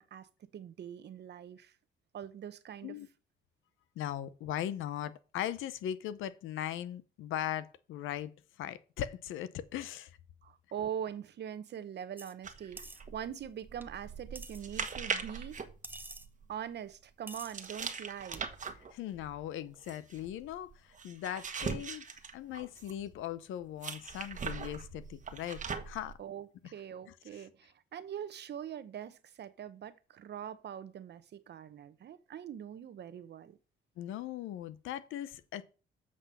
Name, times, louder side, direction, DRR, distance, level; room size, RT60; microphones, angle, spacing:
voice 1, 0.0-1.7 2.1-3.0 10.4-15.6 16.5-18.5 26.2-33.6, right 9 dB, 60° right, 0.9 m, -43 dB
voice 2, 4.0-8.3 8.6-10.1 18.9-22.1 22.3-26.2 26.6-26.7 27.1-27.4 34.0-35.6, left 11 dB, 85° left, 0.8 m, -39 dB
hucha cerdo ceramica monedas- ceramic piggy bank, 12.2-12.3 12.8-13.0 13.8-13.9 14.3-14.6 15.8-16.3 17.3-17.7 18.3-18.4, right 2 dB, 10° right, 0.8 m, -47 dB
sound 1, 12.4-16.5 17.5-23.1 23.8-26.1, right 5 dB, 40° right, 1.3 m, -41 dB
7.6 x 6.1 x 5.5 m
cardioid pair, 90°, 20 cm